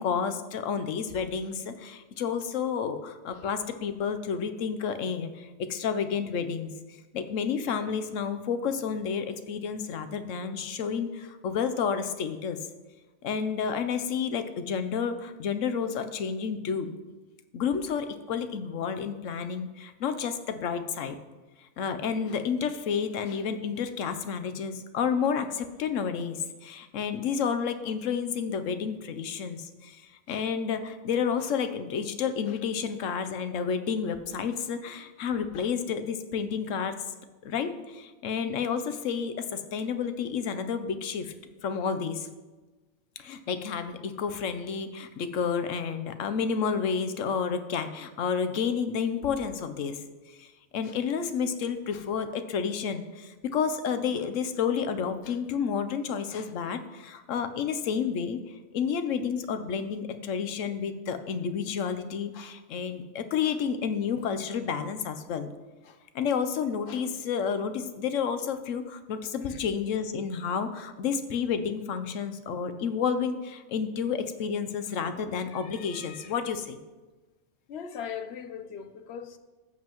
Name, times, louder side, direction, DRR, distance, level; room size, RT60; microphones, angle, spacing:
voice 1, 0.0-6.7 7.1-12.6 13.2-16.9 17.5-21.2 21.8-30.0 30.3-37.0 37.4-41.3 41.6-42.3 43.2-50.0 50.4-65.5 65.8-76.8, left 6 dB, 85° left, 1.1 m, -30 dB
voice 2, 77.7-79.4, left 7 dB, 60° left, 0.9 m, -39 dB
15.5 x 7.5 x 3.0 m
omnidirectional pair, 1.3 m